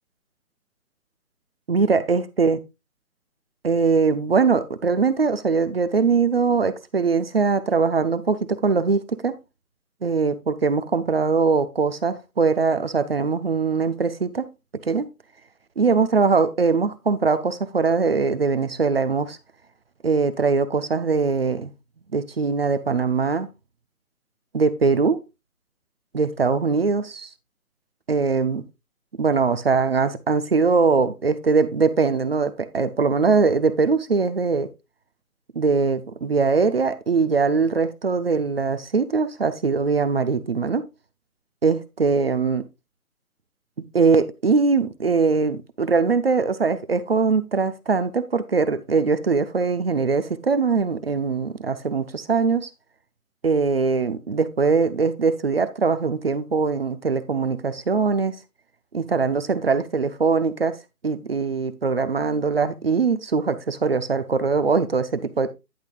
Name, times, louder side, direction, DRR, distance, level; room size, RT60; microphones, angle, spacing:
voice 1, 1.7-2.6 3.6-9.4 10.0-14.5 14.8-15.1 15.8-19.4 20.0-21.7 22.1-23.5 24.5-25.2 26.1-27.3 28.1-28.6 29.2-34.7 35.5-40.8 41.6-42.7 43.9-52.7 53.4-58.4 58.9-60.8 61.0-65.5, right 4 dB, 40° right, 0.7 m, -21 dB
10.5 x 8.4 x 2.3 m
hypercardioid pair, 170°, 45 cm